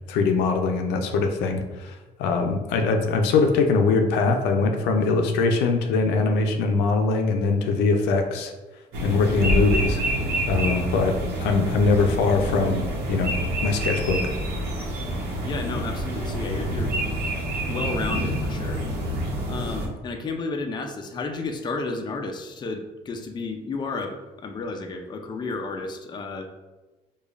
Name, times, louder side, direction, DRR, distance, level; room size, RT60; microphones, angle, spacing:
voice 1, 0.1-1.9 2.2-8.5 9.0-10.0 10.5-12.8 13.1-13.3 13.6-14.2, left 4 dB, 90° left, 5 dB, 0.5 m, -22 dB
sound 1, 8.9-19.9, equal, 75° right, 0.9 m, -27 dB
voice 2, 15.4-16.9 17.7-18.8 19.5-26.5, left 3 dB, 25° left, 5 dB, 0.4 m, -32 dB
4.9 x 2.3 x 2.4 m, 1.2 s
cardioid pair, 110°, 17 cm